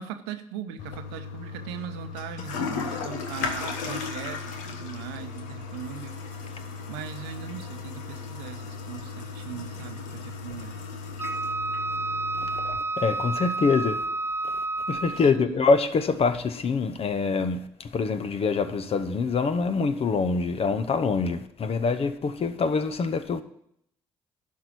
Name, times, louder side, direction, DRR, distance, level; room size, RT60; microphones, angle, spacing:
voice 1, 0.0-6.6 6.9-10.8 15.1-15.7, right 9 dB, 80° right, 0.8 m, -39 dB
Toilet flush, 0.8-12.8, left 5 dB, 75° left, 1.1 m, -36 dB
Wind instrument woodwind instrument, 11.2-15.4, right 2 dB, 20° right, 0.4 m, -30 dB
voice 2, 13.0-14.0 14.4-23.4, left 4 dB, 50° left, 1.1 m, -25 dB
11.5 x 4.8 x 8.5 m
hypercardioid pair, 45°, 13 cm